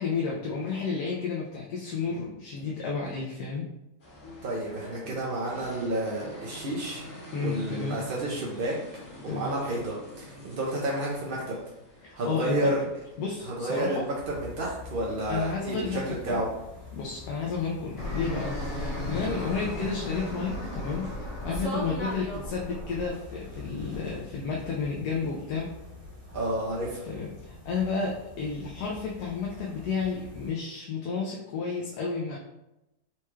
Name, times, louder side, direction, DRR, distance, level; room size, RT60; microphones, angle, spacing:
voice 1, 0.0-3.7 7.3-8.0 9.3-9.6 12.0-12.7 13.2-14.1 15.3-16.0 16.3-16.4 16.9-21.1 21.4-25.7 27.0-32.4, left 5 dB, 80° left, -3 dB, 1.2 m, -31 dB
sound 1, 4.0-21.1, left 1 dB, 40° left, 0.9 m, -48 dB
voice 2, 4.4-7.0 7.4-8.8 9.2-11.6 12.2-12.8 13.5-16.5 26.3-27.0, right 1 dB, 55° right, -4 dB, 0.6 m, -30 dB
sound 2, 14.2-30.5, left 4 dB, 80° right, 1.6 m, -46 dB
Fixed-wing aircraft airplane, 18.0-23.1, equal, 60° left, 1.7 m, -34 dB
4.4 x 2.3 x 3.0 m, 0.92 s
omnidirectional pair, 1.6 m